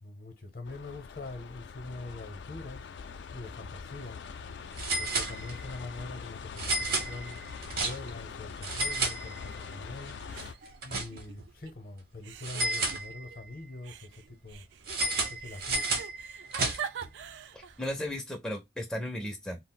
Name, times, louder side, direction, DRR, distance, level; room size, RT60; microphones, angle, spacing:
voice 1, 0.0-2.9 3.3-4.2 5.0-7.4 7.7-10.2 10.8-14.6 15.2-16.0, left 2 dB, 50° left, 0.7 m, -43 dB
sound 1, 0.6-10.5, left 6 dB, 70° left, 0.3 m, -43 dB
sound 2, 3.6-3.8 4.1-4.2 4.7-5.8 6.5-8.3 8.6-9.7 10.1-11.5 12.4-13.5 14.8-17.1, right 2 dB, 55° right, 0.8 m, -32 dB
sound 3, 9.4-10.0 10.3-11.7 12.2-13.4 13.8-17.8, right 8 dB, 75° right, 0.3 m, -44 dB
voice 2, 17.5-19.6, left 1 dB, 5° left, 0.4 m, -35 dB
2.4 x 2.0 x 3.8 m
head